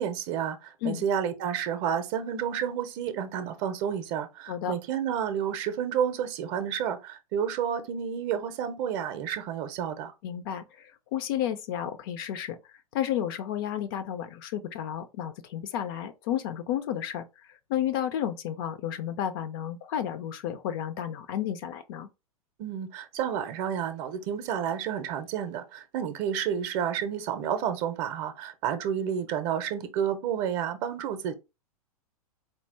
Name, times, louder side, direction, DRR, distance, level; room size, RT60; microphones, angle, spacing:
voice 1, 0.0-10.1 22.6-31.3, right 8 dB, 35° right, 0.6 m, -30 dB
voice 2, 10.2-10.6 11.1-12.6 12.9-17.2 17.7-22.1, left 10 dB, 40° left, 0.5 m, -31 dB
4.4 x 2.3 x 3.3 m
figure-of-eight pair, 100°, 19 cm